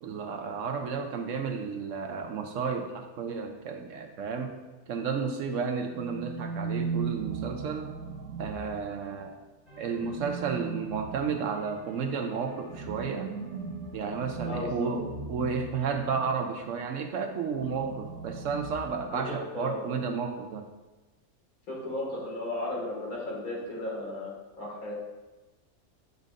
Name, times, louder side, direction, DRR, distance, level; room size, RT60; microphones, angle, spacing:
voice 1, 0.0-4.6 4.9-7.9 8.4-9.4 9.8-13.3 13.9-20.7, right 5 dB, 70° right, 5 dB, 0.8 m, -32 dB
sound 1, 5.9-9.2 9.9-16.5 17.5-19.4, right 5 dB, 85° right, 1.2 m, -38 dB
sound 2, 9.7-15.1, right 3 dB, 30° left, 1.1 m, -51 dB
voice 2, 14.4-14.9 19.1-20.1 21.7-24.9, left 1 dB, 80° left, -5 dB, 2.4 m, -35 dB
8.2 x 5.2 x 2.5 m, 1.2 s
omnidirectional pair, 1.5 m